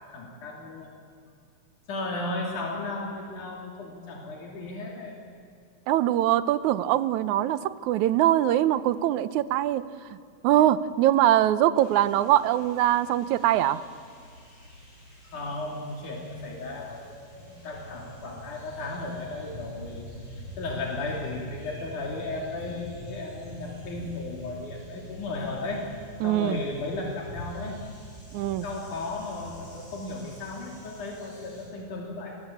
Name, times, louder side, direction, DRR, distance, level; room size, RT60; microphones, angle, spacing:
voice 1, 0.1-1.0 1.9-5.2 15.2-17.1 17.4-20.1 20.3-25.9 26.2-27.8 28.4-32.4, left 2 dB, 80° left, -1 dB, 4.4 m, -35 dB
voice 2, 5.9-10.2 10.4-13.8 26.2-26.6 28.3-28.7, right 13 dB, 75° right, 15 dB, 2.1 m, -23 dB
sound 1, 11.8-31.7, equal, 45° left, 7.8 m, -45 dB
28.5 x 22.0 x 8.5 m, 2.4 s
omnidirectional pair, 3.5 m